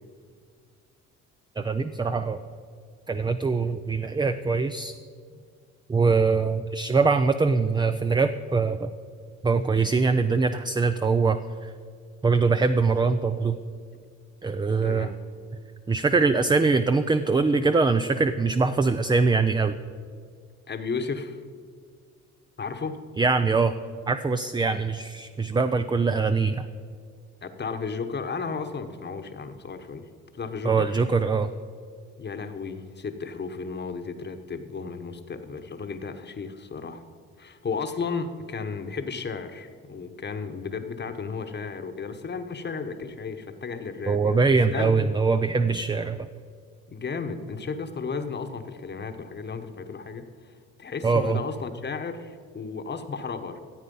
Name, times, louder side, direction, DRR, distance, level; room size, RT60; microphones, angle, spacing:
voice 1, 1.6-2.4 3.1-4.9 5.9-8.9 9.4-11.7 12.2-13.6 14.4-15.1 15.9-19.8 23.2-23.7 24.1-26.7 30.6-31.5 44.1-46.3 51.0-51.4, right 4 dB, 15° right, 9 dB, 0.4 m, -23 dB
voice 2, 14.8-15.1 20.7-21.4 22.6-22.9 27.4-30.0 30.3-31.0 32.2-37.1 37.4-44.4 44.7-45.1 46.9-50.5 50.8-53.6, left 5 dB, 35° left, 7 dB, 1.1 m, -34 dB
14.0 x 8.2 x 5.4 m, 2.1 s
cardioid pair, 90°, 30 cm